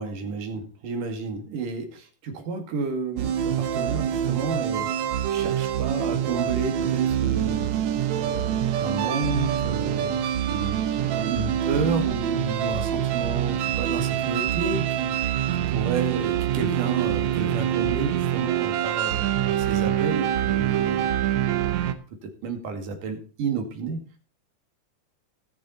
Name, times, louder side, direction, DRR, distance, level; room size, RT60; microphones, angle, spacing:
voice 1, 0.0-4.9 5.3-10.2 10.5-21.2 22.2-24.0, right 4 dB, 90° right, 5 dB, 3.7 m, -31 dB
sound 1, 3.2-21.9, right 10 dB, 65° right, 2.1 m, -25 dB
19.5 x 6.8 x 4.1 m, 0.36 s
omnidirectional pair, 3.6 m